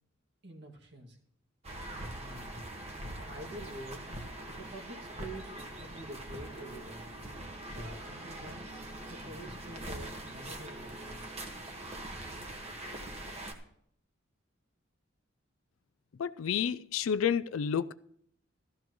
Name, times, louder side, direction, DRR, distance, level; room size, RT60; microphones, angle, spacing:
voice 1, 0.4-1.2 2.1-2.5 3.2-4.1 4.6-7.0 7.7-11.4, right 1 dB, 60° right, 2.0 m, -47 dB
sound 1, 1.6-13.5, right 1 dB, 30° right, 1.5 m, -43 dB
voice 2, 16.2-17.9, left 7 dB, 85° left, 0.4 m, -30 dB
15.5 x 13.0 x 3.1 m
head